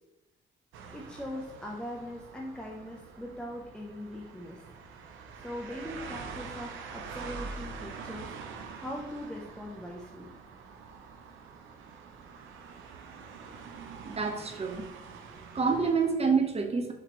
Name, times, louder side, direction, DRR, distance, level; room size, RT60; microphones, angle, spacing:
sound 1, 0.7-16.1, right 5 dB, 80° right, 0.6 m, -45 dB
voice 1, 0.9-4.6 5.3-10.4, left 1 dB, 5° left, -2 dB, 0.6 m, -41 dB
voice 2, 14.0-14.8 15.5-16.9, right 5 dB, 30° right, 5 dB, 0.7 m, -27 dB
6.0 x 2.9 x 3.0 m, 0.96 s
cardioid pair, 90°, 20 cm